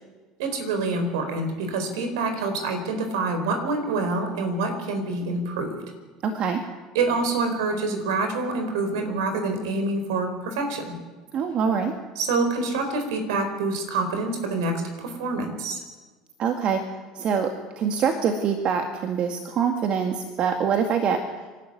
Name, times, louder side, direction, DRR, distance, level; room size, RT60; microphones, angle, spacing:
voice 1, 0.4-5.8 6.9-11.0 12.2-15.8, right 3 dB, 75° right, 6 dB, 4.5 m, -26 dB
voice 2, 6.2-6.6 11.3-11.9 16.4-16.8 17.1-21.2, right 6 dB, 50° right, 5 dB, 2.1 m, -24 dB
25.5 x 12.0 x 9.5 m, 1.3 s
hypercardioid pair, 70°, 2 cm